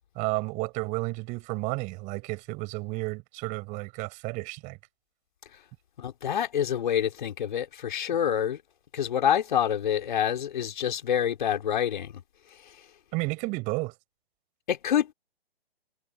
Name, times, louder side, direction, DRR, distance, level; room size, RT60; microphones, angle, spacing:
voice 1, 0.2-4.8 13.1-13.9, right 25 dB, 25° right, 7.3 m, -32 dB
voice 2, 6.0-8.6 8.9-12.1 14.7-15.1, left 9 dB, 50° left, 3.9 m, -27 dB
figure-of-eight pair, 135°, 31 cm